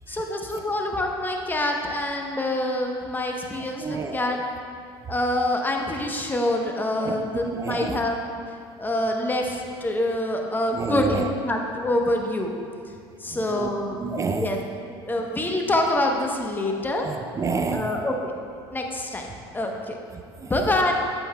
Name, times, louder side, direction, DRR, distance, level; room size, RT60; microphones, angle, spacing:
voice 1, 0.1-4.4 5.1-8.2 8.8-12.5 13.2-14.0 14.2-14.6 14.9-17.1 17.7-18.3 18.7-19.3 19.5-20.0 20.5-20.9, left 1 dB, 15° left, 2 dB, 0.9 m, -26 dB
voice 2, 3.8-4.3 7.0-8.0 10.7-11.3 13.3-13.7 14.0-14.6 17.0-17.9 20.1-20.5, right 4 dB, 25° right, 6 dB, 0.4 m, -29 dB
8.0 x 7.7 x 2.3 m, 2.3 s
hypercardioid pair, 80°, 13 cm